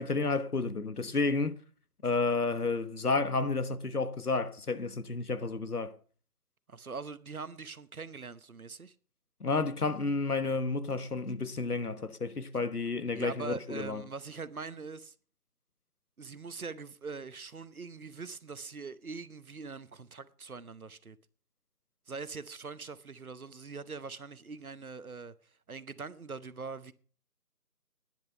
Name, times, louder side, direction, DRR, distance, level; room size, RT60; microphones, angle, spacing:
voice 1, 0.0-1.6 2.0-5.9 9.4-14.0, left 3 dB, 65° left, 1.3 m, -31 dB
voice 2, 6.7-8.9 13.1-15.1 16.2-21.2 22.1-25.3 25.7-26.9, right 4 dB, 60° right, 0.9 m, -42 dB
10.5 x 10.5 x 6.5 m
figure-of-eight pair, 165°, 48 cm